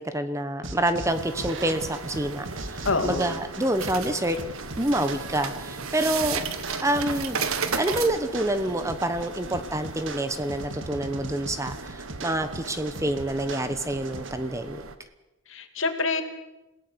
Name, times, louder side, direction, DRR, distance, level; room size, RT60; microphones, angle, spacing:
voice 1, 0.0-4.4 4.8-6.4 6.8-7.4 7.8-14.8, right 1 dB, 15° right, 10 dB, 1.0 m, -27 dB
sound 1, 0.6-14.3, right 2 dB, 65° right, 1.8 m, -39 dB
sound 2, 1.1-14.9, right 5 dB, 90° right, 1.6 m, -36 dB
voice 2, 2.8-3.4 15.5-16.2, left 3 dB, 70° left, 7 dB, 2.4 m, -26 dB
28.5 x 17.0 x 6.9 m, 1.0 s
head